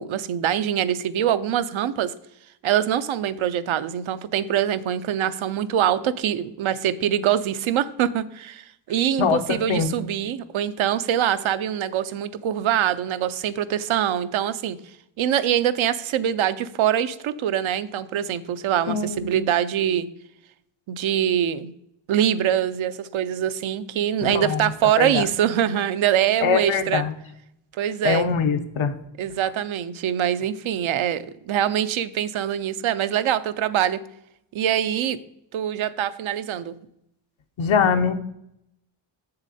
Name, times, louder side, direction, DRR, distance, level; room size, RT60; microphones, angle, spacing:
voice 1, 0.0-2.1 2.6-14.8 15.2-20.1 20.9-21.7 22.1-27.0 27.8-28.3 29.2-34.0 34.5-35.2 35.5-36.7, right 10 dB, 80° right, 12 dB, 0.6 m, -24 dB
voice 2, 9.2-9.9 18.9-19.4 24.2-25.2 26.4-27.1 28.0-29.0 37.6-38.1, left 6 dB, 75° left, 8 dB, 0.9 m, -23 dB
7.3 x 6.7 x 4.1 m, 0.78 s
cardioid pair, 90°, 47 cm